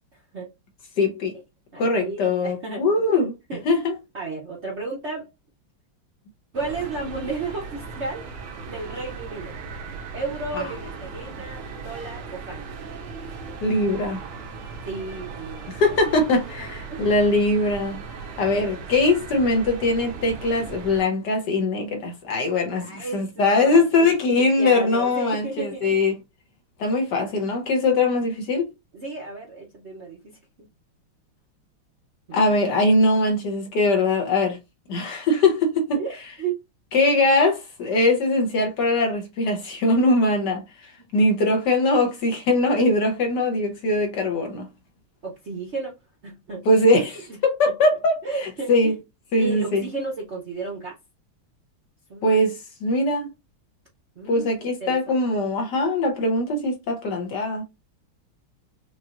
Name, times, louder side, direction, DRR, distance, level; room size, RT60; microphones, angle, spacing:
voice 1, 1.0-1.4 1.8-3.3 3.6-3.9 10.5-10.7 13.6-14.2 15.7-18.0 18.4-26.2 26.8-28.7 32.3-34.6 34.9-36.0 36.9-40.6 41.1-44.7 46.6-48.9 49.3-49.8 52.2-53.3 54.3-57.6, left 2 dB, 60° left, 1.5 m, -21 dB
voice 2, 1.7-2.9 3.5-3.6 4.1-5.3 6.5-8.3 8.7-9.5 10.1-12.6 14.9-16.0 16.9-17.1 22.8-24.1 24.4-26.0 28.9-30.4 32.3-32.4 35.9-36.6 41.0-41.1 45.2-46.0 46.2-46.6 48.2-48.9 49.4-50.9 52.1-52.3 54.2-55.4, right 3 dB, 50° right, 0.8 m, -33 dB
sound 1, 6.5-21.0, right 4 dB, 80° right, 1.8 m, -38 dB
5.8 x 2.6 x 2.5 m
omnidirectional pair, 2.3 m